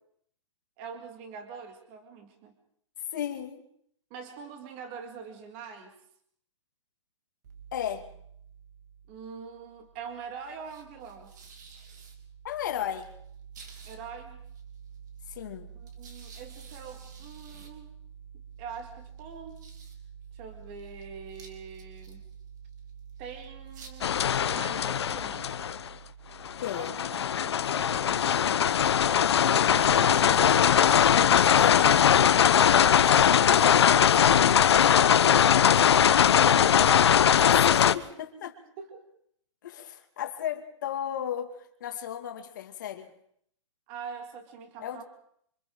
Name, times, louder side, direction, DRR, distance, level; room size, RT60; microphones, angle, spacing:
voice 1, 0.8-2.6 4.1-5.9 9.1-11.3 13.8-14.4 15.7-17.9 18.6-19.6 20.3-22.2 23.2-24.2 24.5-25.5 26.7-28.6 29.7-30.9 33.4-34.1 36.4-37.2 38.8-39.0 43.9-45.0, right 6 dB, 20° right, 5 dB, 2.0 m, -43 dB
voice 2, 3.1-3.6 7.7-8.1 12.4-13.1 15.3-15.7 26.6-27.3 31.6-32.0 34.7-35.2 37.5-38.6 39.6-43.1 44.8-45.0, left 10 dB, 35° left, 4 dB, 2.2 m, -34 dB
sound 1, 7.4-27.3, right 7 dB, 35° right, 2.9 m, -48 dB
sound 2, 24.0-25.9 26.5-37.9, left 9 dB, 55° left, 0.8 m, -21 dB
28.5 x 25.5 x 3.9 m, 0.68 s
hypercardioid pair, 180°, 16 cm